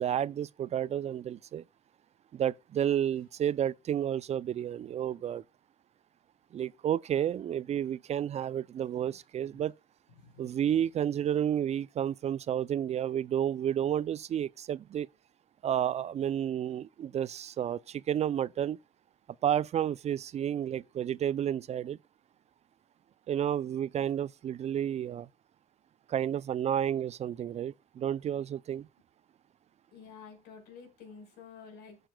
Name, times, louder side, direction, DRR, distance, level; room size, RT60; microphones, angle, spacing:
voice 1, 0.0-1.6 2.3-5.4 6.5-9.7 10.4-15.1 15.6-18.8 19.4-22.0 23.3-25.3 26.1-28.9, right 10 dB, 40° right, 0.4 m, -31 dB
voice 2, 10.2-10.5 29.9-32.1, left 5 dB, 85° left, 4.8 m, -50 dB
13.5 x 6.7 x 2.2 m
cardioid pair, 110°, 17 cm